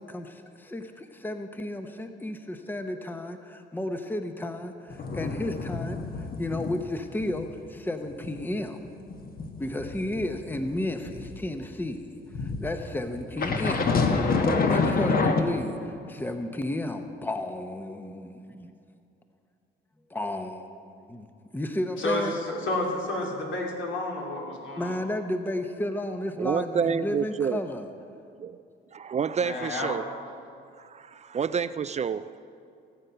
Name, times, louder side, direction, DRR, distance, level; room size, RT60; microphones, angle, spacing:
voice 1, 0.0-8.8 9.6-13.9 14.4-18.7 20.1-20.8 21.1-22.4 24.8-27.9, left 1 dB, 10° left, 7 dB, 0.8 m, -33 dB
sound 1, 4.9-6.8 7.1-7.4 7.8-11.4 12.3-15.4, left 4 dB, 50° left, 1.3 m, -27 dB
voice 2, 22.0-25.0 29.4-30.0, left 2 dB, 75° left, -1 dB, 2.8 m, -30 dB
voice 3, 26.4-27.6 28.4-28.6 28.9-30.0 30.8-32.4, right 6 dB, 35° right, 14 dB, 0.4 m, -28 dB
17.5 x 8.0 x 5.7 m, 2.5 s
cardioid pair, 90°, 20 cm